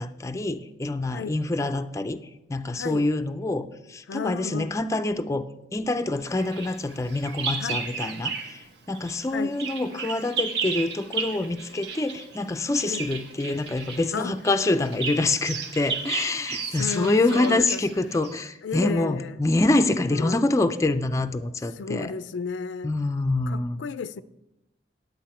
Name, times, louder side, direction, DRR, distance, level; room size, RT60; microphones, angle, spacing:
voice 1, 0.0-2.2 2.5-5.5 5.7-22.1 22.8-23.8, left 2 dB, 15° left, 0.4 m, -26 dB
voice 2, 2.7-3.1 4.1-4.8 7.6-7.8 9.3-9.6 12.8-13.1 14.1-14.4 16.7-17.8 18.6-19.5 20.1-20.4 21.7-22.9 23.5-24.2, left 5 dB, 80° left, 0.4 m, -33 dB
Bird vocalization bird call bird song, 6.4-8.6 8.9-18.5, right 5 dB, 65° right, 1.1 m, -34 dB
10.0 x 8.2 x 4.4 m
head